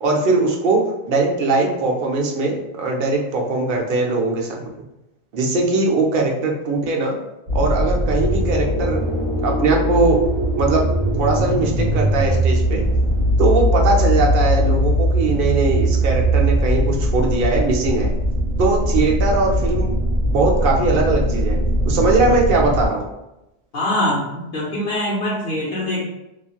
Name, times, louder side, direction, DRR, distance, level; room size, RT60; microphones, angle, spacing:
voice 1, 0.0-4.7 5.3-7.2 7.5-9.0 9.4-10.2 10.6-10.8 11.2-12.8 13.4-18.1 18.6-20.0 20.3-21.6 21.9-23.1, right 3 dB, 60° right, 0 dB, 0.7 m, -20 dB
sound 1, 7.5-22.9, equal, 40° right, 1.3 m, -20 dB
voice 2, 23.7-26.0, left 1 dB, 70° left, -7 dB, 0.9 m, -23 dB
2.9 x 2.4 x 2.3 m, 0.92 s
omnidirectional pair, 1.0 m